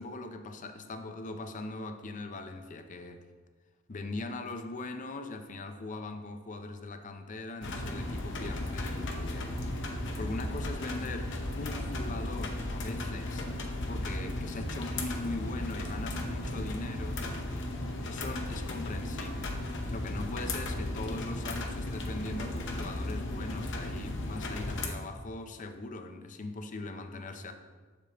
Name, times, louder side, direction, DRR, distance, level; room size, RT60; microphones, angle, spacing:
voice 1, 0.0-3.2 3.9-9.8 10.2-13.5 13.9-17.2 18.0-19.6 19.9-27.5, left 2 dB, 40° left, 7 dB, 0.5 m, -40 dB
sound 1, 7.6-24.9, left 1 dB, 60° left, 0.8 m, -35 dB
7.6 x 6.6 x 2.9 m, 1.4 s
head